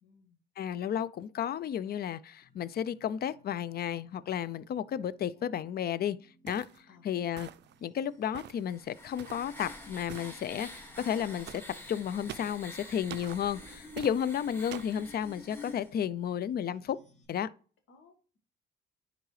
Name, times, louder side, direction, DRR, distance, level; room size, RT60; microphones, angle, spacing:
voice 1, 0.0-0.4 5.0-5.5 6.9-7.0 17.9-18.4, left 5 dB, 80° left, 1.6 m, -61 dB
voice 2, 0.6-6.2 6.4-6.6 7.0-7.5 7.8-11.6 11.9-17.0 17.3-17.5, left 9 dB, 50° left, 0.4 m, -33 dB
sound 1, 2.4-17.3, equal, 35° left, 2.5 m, -65 dB
sound 2, 6.5-6.8 7.4-7.8 8.3-8.6 9.2-9.5 10.1-10.4 11.5-11.7 12.3-12.6 13.1-13.4 14.0-14.2 14.7-15.0, right 12 dB, 60° right, 0.4 m, -44 dB
sound 3, 8.4-15.9, left 1 dB, 10° left, 1.8 m, -48 dB
10.0 x 3.8 x 3.2 m
cardioid pair, 90°, 20 cm